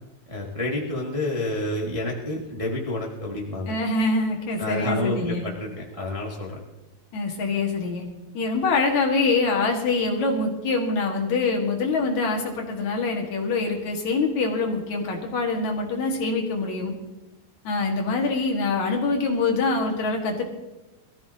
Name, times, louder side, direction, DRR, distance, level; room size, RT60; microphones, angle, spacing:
voice 1, 0.3-3.7 4.6-6.6, left 1 dB, 35° right, -3 dB, 0.5 m, -29 dB
voice 2, 3.7-5.5 7.1-8.0 8.3-16.9 17.6-20.4, left 3 dB, 60° left, 0 dB, 2.8 m, -24 dB
22.5 x 14.5 x 2.8 m, 1.1 s
omnidirectional pair, 4.1 m